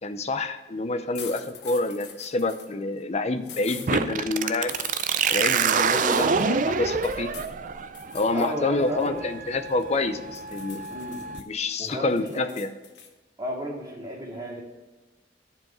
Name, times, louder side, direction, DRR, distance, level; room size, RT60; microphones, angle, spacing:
voice 1, 0.0-4.7 5.3-7.3 8.1-10.8 11.5-12.7, left 2 dB, 35° left, 10 dB, 0.6 m, -27 dB
sound 1, 1.1-2.7 3.4-3.9 4.7-5.1 5.9-6.5 7.0-7.5 7.9-8.5 8.8-10.0 10.3-11.4 11.8-13.1, left 7 dB, 65° left, 1.1 m, -43 dB
sound 2, 3.9-11.4, right 6 dB, 45° right, 0.4 m, -27 dB
voice 2, 5.9-6.3 8.3-9.2 10.9-11.3 11.8-12.5 13.4-14.6, equal, 20° right, -4 dB, 2.2 m, -33 dB
10.5 x 4.8 x 6.0 m, 1.2 s
head